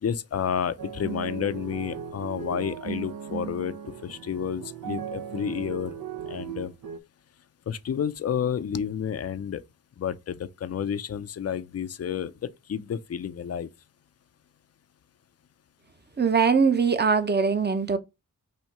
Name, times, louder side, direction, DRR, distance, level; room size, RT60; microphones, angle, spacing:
voice 1, 0.0-3.7 4.0-5.9 6.3-6.7 7.7-9.6 10.0-12.3 12.7-13.7, left 8 dB, 45° left, 0.5 m, -30 dB
sound 1, 0.8-7.0, right 8 dB, 75° right, 0.7 m, -37 dB
voice 2, 16.2-18.0, right 5 dB, 30° right, 0.7 m, -22 dB
4.3 x 2.8 x 4.5 m
wide cardioid pair, 70°, 34 cm